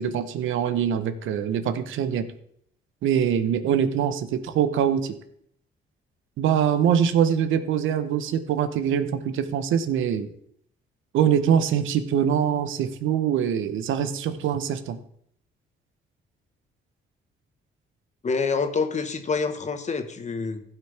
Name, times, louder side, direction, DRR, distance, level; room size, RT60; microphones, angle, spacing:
voice 1, 0.0-2.3 3.0-5.1 6.4-10.3 11.1-15.0, right 8 dB, 80° right, 10 dB, 1.0 m, -23 dB
voice 2, 18.2-20.6, left 4 dB, 35° left, 7 dB, 1.3 m, -27 dB
15.5 x 5.9 x 3.4 m, 0.70 s
cardioid pair, 90°, 20 cm